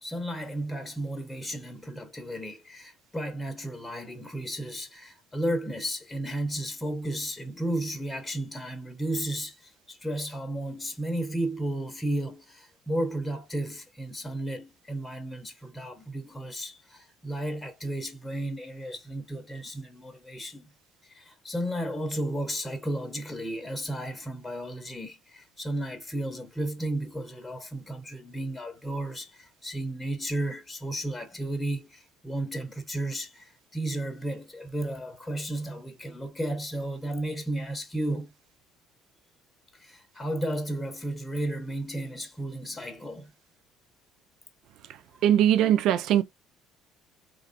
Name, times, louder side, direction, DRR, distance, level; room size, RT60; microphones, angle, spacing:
voice 1, 0.0-20.7 21.0-38.3 39.7-43.3, right 1 dB, 15° left, 0.9 m, -33 dB
voice 2, 45.2-46.2, right 11 dB, 65° right, 0.4 m, -21 dB
3.3 x 2.4 x 2.5 m
hypercardioid pair, 65°, 0 cm